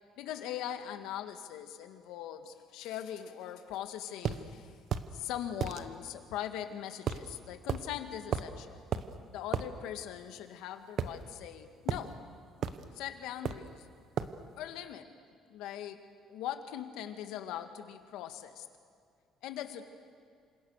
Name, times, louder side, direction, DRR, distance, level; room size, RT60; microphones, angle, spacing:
voice 1, 0.2-4.7 5.1-8.8 9.3-12.2 12.9-13.9 14.6-15.1 15.5-16.0 16.3-18.7 19.4-19.9, left 10 dB, 85° left, 8 dB, 1.9 m, -41 dB
sound 1, 4.2-4.4 4.9-5.1 5.6-5.8 7.1-7.3 7.7-7.8 8.3-8.6 8.9-9.1 9.5-9.7 11.0-11.5 11.9-12.1 12.6-12.9 13.4-13.7 14.2-14.4, right 8 dB, 45° right, 1.1 m, -33 dB
28.0 x 26.5 x 6.6 m, 2.2 s
cardioid pair, 170°, 0 cm